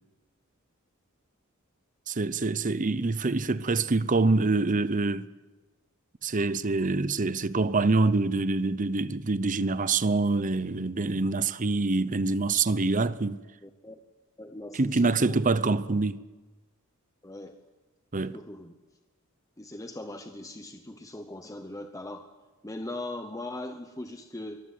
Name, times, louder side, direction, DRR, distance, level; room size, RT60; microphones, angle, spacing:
voice 1, 2.1-5.3 6.2-13.4 14.7-16.2 18.1-18.4, right 3 dB, 40° right, 0.7 m, -25 dB
voice 2, 13.6-14.0 14.4-15.7 17.2-17.6 18.3-18.7 19.6-22.3 22.6-24.6, left 1 dB, 15° left, 0.9 m, -40 dB
24.0 x 15.0 x 9.5 m
head